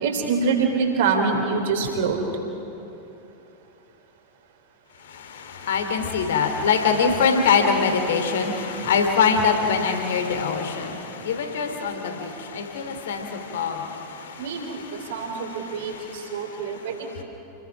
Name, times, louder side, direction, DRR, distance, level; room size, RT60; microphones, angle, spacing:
voice 1, 0.0-2.2 14.4-14.8 15.1-15.9 16.3-16.9, right 5 dB, 55° right, 3 dB, 3.8 m, -24 dB
voice 2, 5.0-17.2, left 5 dB, 60° left, 5 dB, 2.7 m, -24 dB
29.0 x 21.0 x 6.1 m, 2.9 s
figure-of-eight pair, 90°, 0 cm